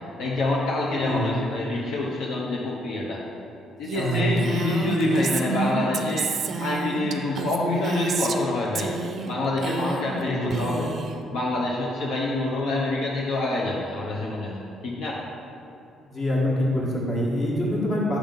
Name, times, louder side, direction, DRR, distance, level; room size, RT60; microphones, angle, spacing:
voice 1, 0.2-3.2 3.8-8.9 9.3-10.9 11.3-15.1, left 2 dB, 75° left, -4 dB, 0.7 m, -26 dB
voice 2, 1.0-1.4 3.9-4.4 10.2-10.6 16.1-18.2, equal, 40° left, -4 dB, 1.4 m, -25 dB
Female speech woman speaking, 3.9-8.5 8.8-9.3 9.6-10.2 10.5-11.2, right 4 dB, 45° right, 0.4 m, -30 dB
6.0 x 3.6 x 5.2 m, 2.7 s
cardioid pair, 115°, 0 cm